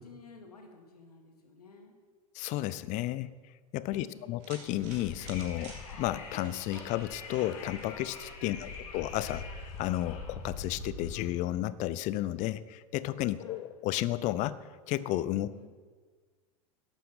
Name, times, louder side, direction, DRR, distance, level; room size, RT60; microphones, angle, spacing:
voice 1, 0.0-2.0 3.9-4.4 8.5-8.9 13.4-13.6 15.5-15.7, left 4 dB, 80° left, 3 dB, 2.1 m, -53 dB
voice 2, 2.3-3.3 3.7-14.6 14.9-15.5, left 15 dB, 40° left, 17 dB, 0.6 m, -33 dB
sound 1, 4.4-10.0, right 4 dB, 50° right, 3.3 m, -53 dB
Wind, 4.6-11.3, left 4 dB, 60° left, 2.0 m, -43 dB
11.5 x 8.3 x 5.7 m, 1.5 s
figure-of-eight pair, 90°, 19 cm